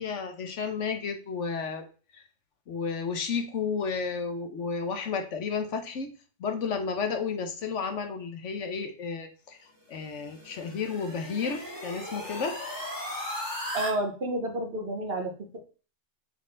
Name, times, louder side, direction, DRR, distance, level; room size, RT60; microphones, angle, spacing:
voice 1, 0.0-1.9 2.1-2.2 2.7-6.1 6.4-9.6 9.9-12.6, left 5 dB, 70° left, 7 dB, 1.2 m, -32 dB
sound 1, 9.9-13.9, left 1 dB, 15° left, 2.1 m, -37 dB
voice 2, 13.7-15.6, right 1 dB, 50° right, 4 dB, 1.2 m, -30 dB
6.5 x 4.4 x 3.8 m, 0.37 s
omnidirectional pair, 1.3 m